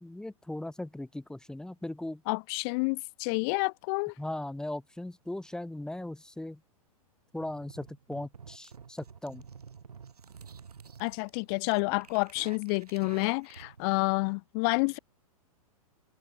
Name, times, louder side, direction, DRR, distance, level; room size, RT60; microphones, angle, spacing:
voice 1, 0.0-2.2 4.2-6.6 7.3-9.4, left 1 dB, 5° left, 1.8 m, -38 dB
voice 2, 2.3-4.1 11.0-15.0, left 33 dB, 40° left, 0.5 m, -29 dB
sound 1, 7.4-13.8, right 6 dB, 90° right, 2.4 m, -50 dB
hypercardioid pair, 120°, 19 cm